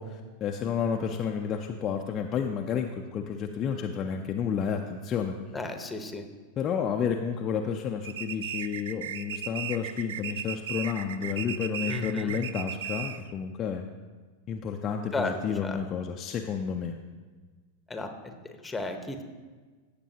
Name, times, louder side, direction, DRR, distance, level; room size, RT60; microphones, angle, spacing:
voice 1, 0.0-5.4 6.6-13.9 14.5-17.0, left 7 dB, 35° left, 2 dB, 0.6 m, -31 dB
voice 2, 5.5-6.2 11.9-12.4 15.1-15.8 17.9-19.2, left 2 dB, 10° left, 6 dB, 1.1 m, -34 dB
sound 1, 8.0-13.3, right 9 dB, 70° right, 0.4 m, -36 dB
16.0 x 6.9 x 2.9 m, 1.4 s
hypercardioid pair, 95°, 0 cm